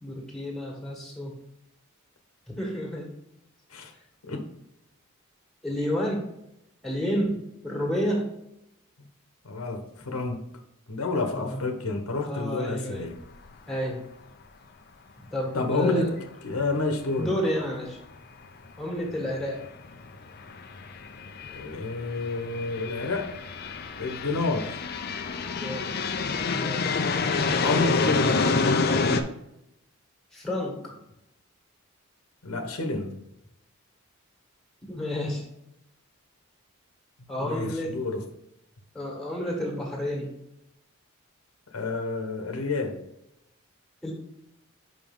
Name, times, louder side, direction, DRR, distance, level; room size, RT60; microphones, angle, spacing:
voice 1, 0.0-1.4 2.5-3.1 5.6-6.3 6.8-7.4 7.6-8.3 11.3-11.7 12.2-13.1 13.7-14.0 15.2-16.1 16.5-16.6 17.2-18.0 18.8-19.7 25.5-25.9 26.5-26.9 30.3-31.0 34.8-35.4 37.3-38.0 38.9-40.3 44.0-44.1, equal, ahead, -2 dB, 1.7 m, -30 dB
voice 2, 9.4-10.5 10.9-13.1 15.5-16.1 16.4-17.3 21.5-23.3 24.0-24.7 27.6-28.5 32.4-33.1 37.4-38.2 41.7-43.0, left 3 dB, 90° left, 4 dB, 1.1 m, -29 dB
sound 1, 13.1-13.2 13.5-13.6 17.6-17.7 18.8-19.0 19.6-29.2, left 4 dB, 45° left, 0.5 m, -28 dB
5.9 x 5.3 x 3.8 m, 0.84 s
head